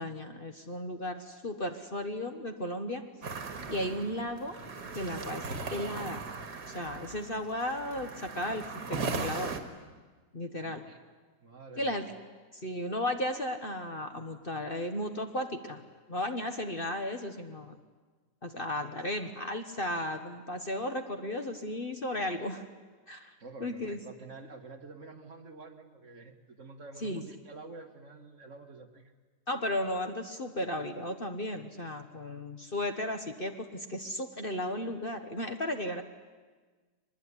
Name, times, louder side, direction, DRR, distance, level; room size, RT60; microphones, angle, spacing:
voice 1, 0.0-3.0 3.7-4.6 4.9-6.2 6.7-9.6 10.3-10.8 11.8-12.1 12.6-15.8 16.1-17.8 18.4-22.6 23.1-23.3 23.6-24.0 27.0-27.2 29.5-36.0, left 1 dB, 35° left, 6 dB, 1.3 m, -35 dB
sound 1, 3.2-9.6, right 4 dB, 70° right, 2.4 m, -38 dB
voice 2, 10.6-11.0 11.4-12.0 23.4-29.1, right 3 dB, 45° right, 6 dB, 1.9 m, -48 dB
23.0 x 21.0 x 9.8 m, 1.4 s
omnidirectional pair, 1.8 m